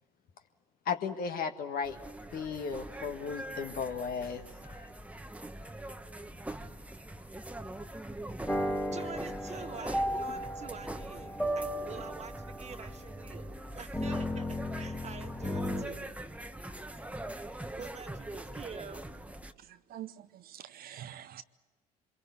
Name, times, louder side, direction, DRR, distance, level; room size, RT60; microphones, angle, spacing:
voice 1, 0.9-2.0 2.3-4.9, left 6 dB, 55° left, 7 dB, 1.7 m, -35 dB
sound 1, 1.8-19.5, right 1 dB, 5° right, 1.2 m, -43 dB
sound 2, 8.5-15.8, equal, 10° left, 1.9 m, -35 dB
voice 2, 8.9-16.4 17.8-19.1, right 6 dB, 35° right, 6 dB, 1.8 m, -46 dB
voice 3, 19.6-21.4, right 11 dB, 55° right, 11 dB, 0.8 m, -46 dB
25.0 x 22.5 x 8.3 m, 1.2 s
hypercardioid pair, 60°, 18 cm